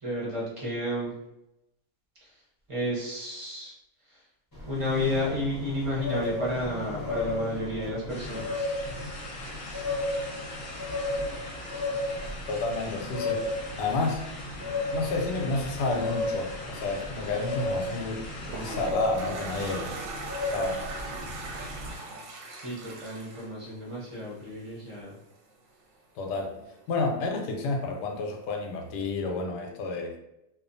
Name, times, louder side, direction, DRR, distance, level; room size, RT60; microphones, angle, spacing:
voice 1, 0.0-1.1 2.2-2.4 2.7-3.7 4.1-4.2 4.7-8.7 22.5-25.2, left 1 dB, 35° right, -5 dB, 0.5 m, -32 dB
sound 1, 4.5-22.0, left 1 dB, 25° left, 0.5 m, -34 dB
sound 2, 8.1-18.9, left 2 dB, 65° left, 0.9 m, -43 dB
voice 2, 12.5-14.2 14.9-19.9 20.4-20.9 26.2-26.5 26.9-30.2, left 3 dB, 90° left, 2 dB, 1.2 m, -30 dB
Toilet flush, 18.1-24.5, right 3 dB, 65° right, 0.9 m, -39 dB
2.5 x 2.4 x 2.5 m, 0.88 s
omnidirectional pair, 1.7 m